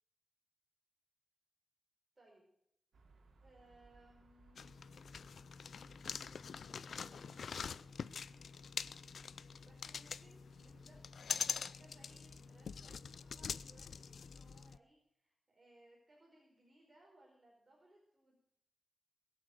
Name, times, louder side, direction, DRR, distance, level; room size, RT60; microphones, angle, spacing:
voice 1, 2.1-2.5 3.4-4.7 6.3-7.5 9.6-11.0 11.6-18.4, right 1 dB, 30° right, -2 dB, 4.7 m, -66 dB
sound 1, 2.9-14.0, right 3 dB, 75° right, 3.0 m, -66 dB
sound 2, 4.6-14.8, left 6 dB, 70° left, 0.5 m, -45 dB
22.0 x 8.0 x 6.4 m, 0.74 s
wide cardioid pair, 120°, 0 cm